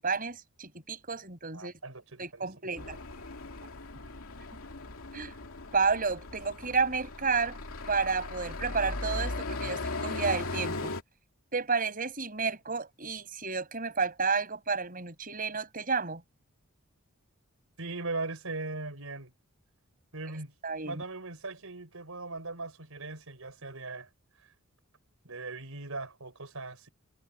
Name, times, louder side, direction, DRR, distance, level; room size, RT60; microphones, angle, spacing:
voice 1, 0.0-1.7 2.2-3.0 5.1-5.3 5.7-7.6 7.9-10.9 11.5-16.2 20.6-21.0, right 5 dB, 40° right, 6.4 m, -31 dB
voice 2, 1.5-2.5 2.7-3.0 3.9-4.2 17.8-19.3 20.1-20.5 20.8-24.1 25.2-26.9, right 3 dB, 80° right, 4.4 m, -39 dB
sound 1, 2.8-11.0, left 2 dB, 80° left, 2.5 m, -38 dB
head